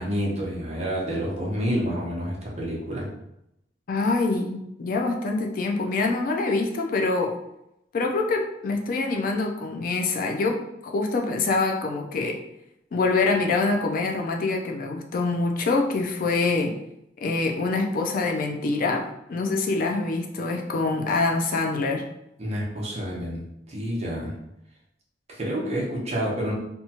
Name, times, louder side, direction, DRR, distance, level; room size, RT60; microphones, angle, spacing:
voice 1, 0.0-3.1 22.4-24.3 25.3-26.5, equal, 35° right, -4 dB, 0.8 m, -29 dB
voice 2, 3.9-7.4 7.9-12.4 12.9-16.8 17.2-22.0, left 3 dB, 50° left, 2 dB, 0.3 m, -25 dB
2.8 x 2.2 x 2.8 m, 0.82 s
head